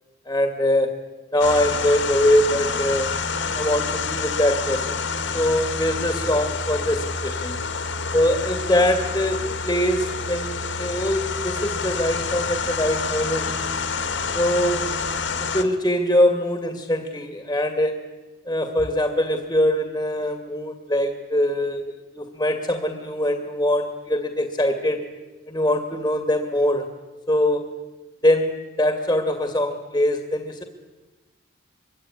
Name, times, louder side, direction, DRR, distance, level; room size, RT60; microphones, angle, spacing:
voice 1, 0.3-1.0 1.3-3.2 3.5-5.0 5.3-7.6 8.1-13.5 14.3-14.9 15.4-18.1 18.5-25.1 25.5-26.9 27.3-27.6 28.2-30.6, left 1 dB, 15° left, 6 dB, 2.3 m, -23 dB
sound 1, 1.4-15.6, left 4 dB, 60° left, 2.1 m, -28 dB
26.0 x 22.5 x 9.9 m, 1.2 s
head